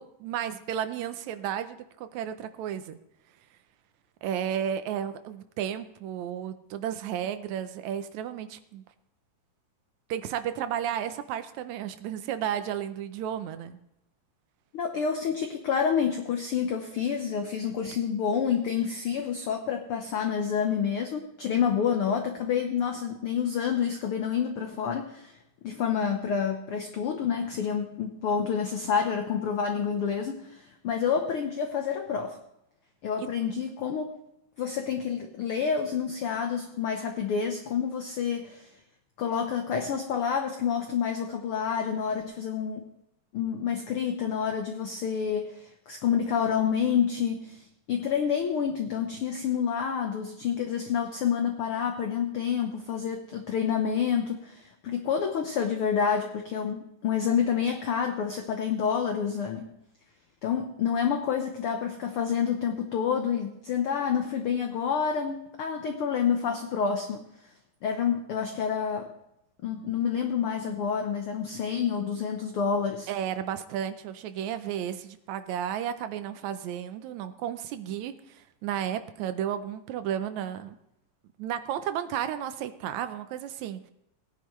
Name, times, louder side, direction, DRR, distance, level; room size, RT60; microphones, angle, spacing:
voice 1, 0.0-3.0 4.2-8.8 10.1-13.8 33.2-33.3 73.1-80.8 81.4-83.9, right 9 dB, 75° right, 10 dB, 1.8 m, -33 dB
voice 2, 14.7-25.4 25.6-32.4 33.0-34.1 34.6-38.7 39.2-42.8 43.3-59.7 60.4-67.2 67.8-69.1 69.6-73.1, left 7 dB, 80° left, 4 dB, 1.2 m, -28 dB
18.0 x 10.0 x 3.1 m, 0.82 s
omnidirectional pair, 3.7 m